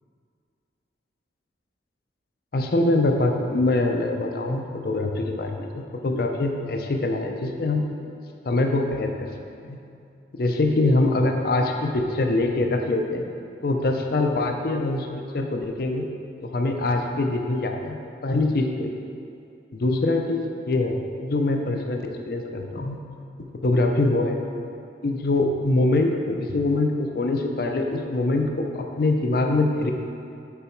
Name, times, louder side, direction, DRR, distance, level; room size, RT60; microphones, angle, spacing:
voice 1, 2.5-7.9 8.5-9.3 9.6-9.8 10.4-13.3 13.6-15.1 15.3-16.0 16.4-18.0 18.2-19.0 19.7-23.0 23.5-24.4 25.0-29.9, left 2 dB, 55° left, 3 dB, 0.5 m, -24 dB
6.9 x 4.6 x 4.4 m, 2.5 s
head